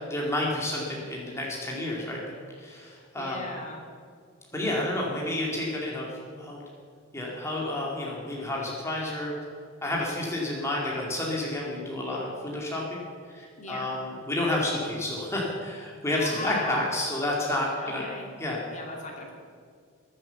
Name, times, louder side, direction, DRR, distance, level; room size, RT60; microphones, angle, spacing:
voice 1, 0.1-3.5 4.5-6.1 6.4-6.6 7.1-9.3 9.8-13.0 13.3-18.1 18.4-18.6, left 1 dB, 15° left, -3 dB, 2.2 m, -30 dB
voice 2, 3.2-3.8 13.6-13.9 16.2-16.8 17.8-18.3 18.7-19.3, left 2 dB, 35° left, 0 dB, 2.5 m, -38 dB
22.0 x 7.5 x 6.9 m, 2.1 s
head